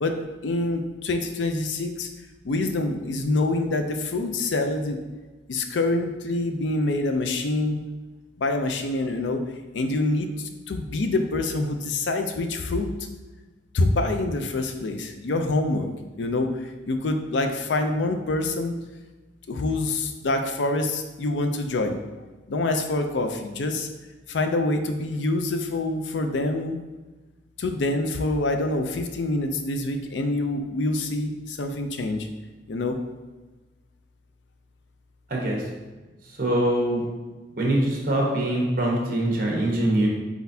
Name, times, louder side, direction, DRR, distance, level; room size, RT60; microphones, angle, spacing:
voice 1, 0.4-2.1 2.4-5.0 5.5-7.8 8.4-9.4 9.7-12.9 13.7-15.9 16.2-18.7 19.5-22.0 22.5-23.9 24.3-26.8 27.6-32.3 32.7-33.0, left 2 dB, 90° left, 6 dB, 0.5 m, -26 dB
voice 2, 35.3-35.6 36.4-37.0 37.6-40.1, right 1 dB, 55° right, -1 dB, 1.0 m, -23 dB
4.5 x 4.0 x 2.7 m, 1.2 s
head